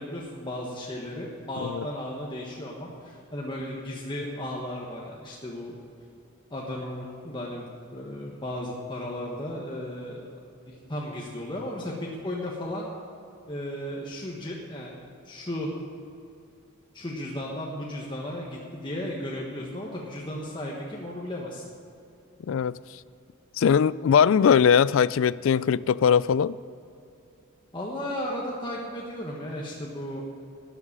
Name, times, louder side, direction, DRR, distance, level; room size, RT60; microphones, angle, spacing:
voice 1, 0.0-5.7 6.5-10.3 10.7-12.9 13.5-14.9 15.3-15.7 16.9-21.6 27.7-30.2, left 1 dB, 20° left, -3 dB, 1.4 m, -35 dB
voice 2, 22.5-22.8 23.6-26.6, left 7 dB, 65° left, 19 dB, 0.3 m, -20 dB
13.0 x 8.0 x 9.7 m, 2.6 s
head